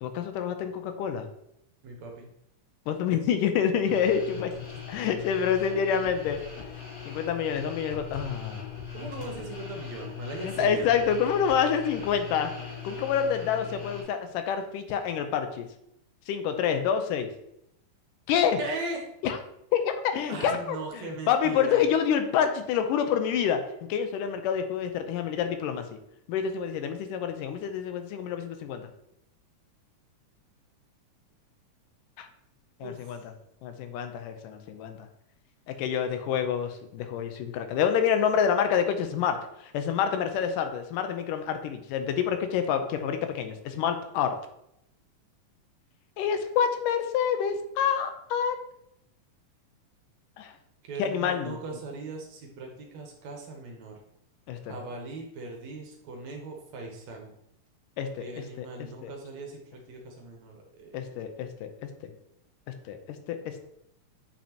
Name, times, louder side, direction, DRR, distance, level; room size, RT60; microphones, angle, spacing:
voice 1, 0.0-1.3 2.9-4.5 4.9-6.4 7.1-8.7 10.4-12.5 12.8-15.7 16.3-17.3 18.3-18.6 19.2-19.4 19.7-23.6 23.9-25.8 26.3-28.9 32.2-32.3 32.8-33.2 33.6-35.1 35.8-44.4 46.2-48.6 50.4-50.5 51.0-51.6 54.5-54.7 58.0-58.1 58.4-58.7 59.0-59.1 60.9-61.9 62.9-63.6, left 8 dB, 85° left, 7 dB, 2.4 m, -27 dB
voice 2, 1.8-2.3 8.9-10.9 18.6-19.1 20.3-21.8 32.8-33.2 35.8-36.4 50.9-53.9 54.7-57.4 58.2-61.4, right 2 dB, 65° right, 1 dB, 2.1 m, -39 dB
sound 1, 3.8-14.0, left 7 dB, 50° left, 3.5 m, -40 dB
8.7 x 5.9 x 2.9 m, 0.77 s
omnidirectional pair, 3.7 m